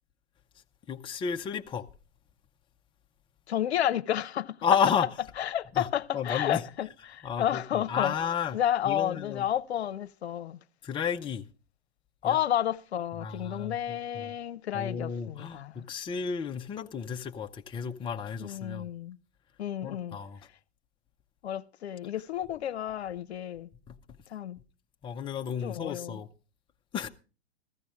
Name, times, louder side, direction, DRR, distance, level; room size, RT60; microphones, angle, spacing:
voice 1, 0.9-1.9 4.6-5.1 5.7-5.9 6.1-6.7 7.2-8.6 8.8-9.5 10.8-11.5 12.2-12.4 13.1-14.4 14.7-18.9 19.8-20.4 23.9-24.0 25.0-26.3 26.9-27.1, left 7 dB, 15° left, 0.7 m, -32 dB
voice 2, 3.5-4.6 5.4-8.1 8.5-10.6 12.2-15.9 18.4-19.2 19.6-20.2 21.4-23.7 24.3-24.6 25.6-26.2, left 11 dB, 70° left, 0.8 m, -31 dB
15.5 x 13.5 x 3.6 m
hypercardioid pair, 115°, 33 cm